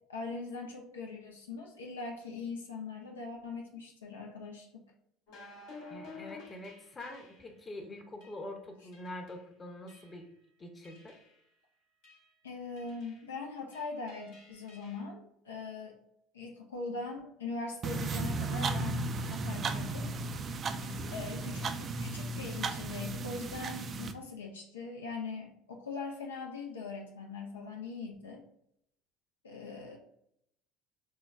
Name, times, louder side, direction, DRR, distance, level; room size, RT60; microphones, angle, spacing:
voice 1, 0.1-4.8 12.4-15.9 16.3-20.1 21.1-28.4 29.4-30.0, left 4 dB, 85° left, 1 dB, 0.4 m, -41 dB
sound 1, 5.3-7.6 8.2-8.4 8.9-9.4 9.9-10.3 10.8-11.4 12.0-12.3 12.8-13.3 13.7-15.0, left 4 dB, 70° left, 1.0 m, -52 dB
voice 2, 5.9-10.3 10.6-11.2 20.8-21.2, left 1 dB, 25° left, 3 dB, 0.7 m, -45 dB
sound 2, 17.8-24.1, right 3 dB, 40° right, 0.3 m, -35 dB
4.5 x 2.1 x 2.3 m, 0.74 s
hypercardioid pair, 70°, 0 cm